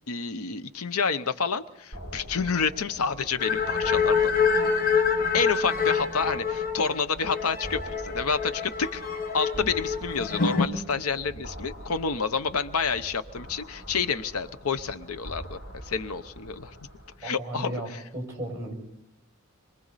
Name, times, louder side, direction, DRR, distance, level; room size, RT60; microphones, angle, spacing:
voice 1, 0.1-4.3 5.3-9.0 9.3-16.8 17.2-17.8, left 5 dB, 80° left, 12 dB, 0.8 m, -29 dB
sound 1, 1.9-17.2, equal, 65° left, 7.3 m, -43 dB
sound 2, 3.4-10.7, left 6 dB, 40° left, 1.3 m, -26 dB
voice 2, 17.2-18.7, right 1 dB, 15° right, 2 dB, 6.5 m, -35 dB
27.5 x 23.5 x 4.1 m, 0.80 s
head